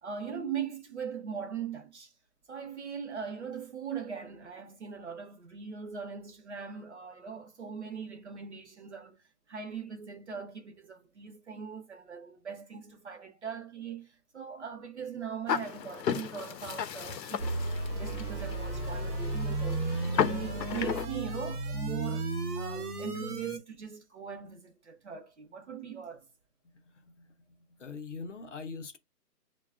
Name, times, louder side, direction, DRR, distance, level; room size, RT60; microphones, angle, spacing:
voice 1, 0.0-2.1 2.5-9.2 9.5-26.2, right 6 dB, 45° right, 0.7 m, -40 dB
sound 1, 15.5-21.1, left 8 dB, 90° left, 0.7 m, -34 dB
sound 2, 17.4-23.6, right 2 dB, 65° right, 1.0 m, -34 dB
voice 2, 27.0-27.3 27.8-29.0, left 4 dB, 50° left, 0.6 m, -42 dB
6.3 x 2.2 x 2.4 m
hypercardioid pair, 160°, 49 cm